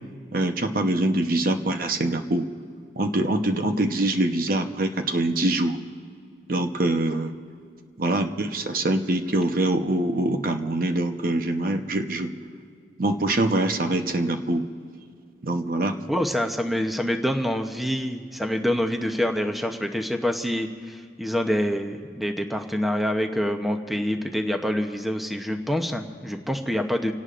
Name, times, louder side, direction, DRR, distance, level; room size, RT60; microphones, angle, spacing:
voice 1, 0.3-2.5 3.0-5.8 6.5-7.3 8.0-12.3 13.0-14.7 15.4-16.0, right 1 dB, 50° right, 5 dB, 0.9 m, -24 dB
voice 2, 16.1-27.1, equal, ahead, 4 dB, 0.8 m, -26 dB
30.0 x 18.0 x 2.5 m, 2.3 s
head